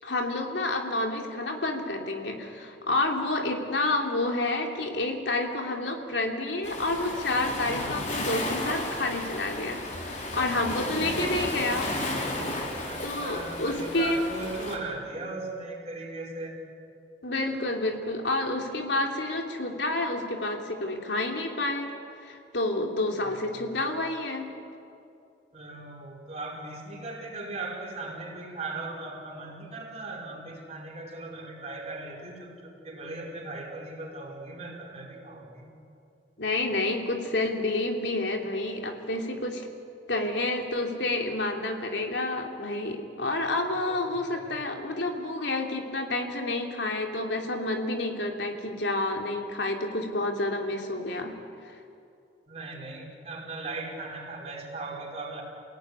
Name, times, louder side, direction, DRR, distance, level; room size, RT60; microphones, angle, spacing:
voice 1, 0.0-11.9 13.0-14.2 17.2-21.9 22.2-24.5 36.4-39.6 40.1-51.3, left 2 dB, 80° left, 2 dB, 3.1 m, -29 dB
Waves surf, 6.6-14.8, left 1 dB, 45° left, 3.7 m, -33 dB
voice 2, 10.7-11.9 12.8-16.6 23.2-23.6 25.5-35.7 43.9-44.6 52.5-55.4, right 2 dB, 40° right, -1 dB, 5.3 m, -38 dB
28.5 x 17.5 x 9.8 m, 2.5 s
head